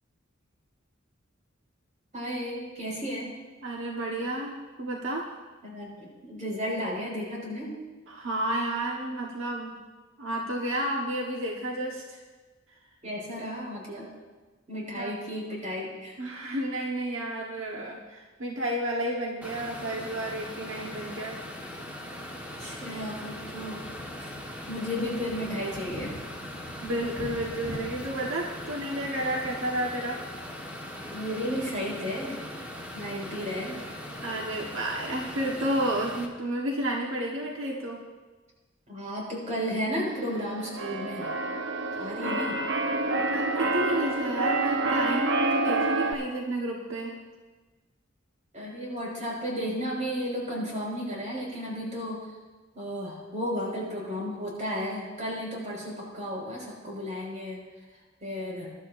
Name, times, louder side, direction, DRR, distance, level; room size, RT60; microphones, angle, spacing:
voice 1, 2.1-3.3 5.6-7.8 13.0-14.1 14.7-16.2 22.6-23.8 24.2-24.3 24.7-26.2 31.0-32.4 32.9-33.8 38.9-41.3 42.0-42.6 48.5-52.3 52.7-57.6 58.2-58.7, equal, 40° right, -3 dB, 5.2 m, -33 dB
voice 2, 3.6-5.3 8.1-9.8 10.2-12.2 15.0-15.1 16.2-21.4 26.8-30.2 34.2-38.0 43.3-47.2, right 1 dB, 85° right, -1 dB, 1.3 m, -31 dB
sound 1, 19.4-36.3, left 1 dB, 10° right, 1.4 m, -40 dB
sound 2, 22.5-31.0, left 1 dB, 75° left, 1.1 m, -46 dB
Keyboard (musical), 40.2-46.1, right 2 dB, 65° right, 1.0 m, -28 dB
23.0 x 12.0 x 2.6 m, 1.3 s
head